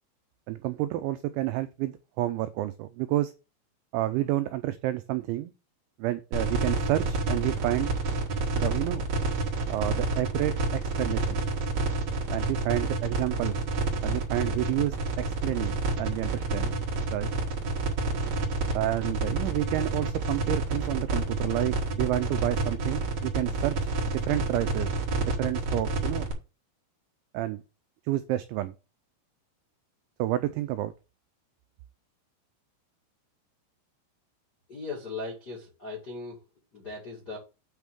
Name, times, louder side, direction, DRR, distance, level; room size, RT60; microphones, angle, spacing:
voice 1, 0.5-3.3 3.9-5.5 6.0-8.0 8.5-9.1 9.7-11.4 12.3-13.6 14.0-16.7 17.1-17.3 18.8-24.9 25.2-26.3 27.3-27.6 28.1-28.7 30.2-30.9, right 15 dB, 85° right, 2.6 m, -30 dB
sound 1, 6.3-26.3, right 3 dB, 60° right, 1.7 m, -29 dB
voice 2, 34.7-36.4 36.7-37.4, left 3 dB, 55° left, 1.1 m, -38 dB
8.9 x 3.5 x 6.1 m
omnidirectional pair, 5.9 m